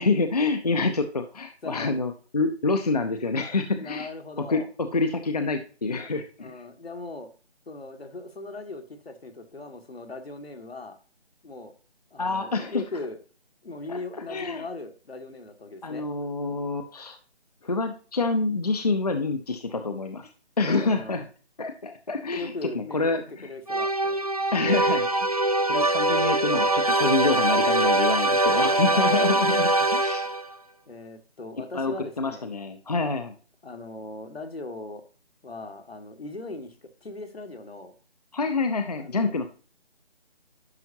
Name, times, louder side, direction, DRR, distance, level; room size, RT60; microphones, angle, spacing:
voice 1, 0.0-4.1 4.5-6.5 12.2-12.8 13.9-14.0 14.3-14.6 15.8-17.2 17.6-20.3 20.6-21.2 21.6-23.5 24.5-30.2 31.7-33.3 38.3-39.5, left 3 dB, 40° left, 7 dB, 0.6 m, -27 dB
voice 2, 1.6-2.0 3.7-4.7 6.4-7.3 7.7-11.0 11.4-11.7 12.1-13.2 13.6-16.1 20.6-21.2 22.3-23.1 23.4-24.2 28.2-29.1 30.9-32.5 33.6-35.0 35.4-37.9 39.0-39.3, left 3 dB, 65° left, 6 dB, 1.5 m, -39 dB
sound 1, 23.7-30.5, right 2 dB, 35° right, 0.4 m, -23 dB
10.5 x 5.9 x 2.7 m, 0.38 s
figure-of-eight pair, 155°, 32 cm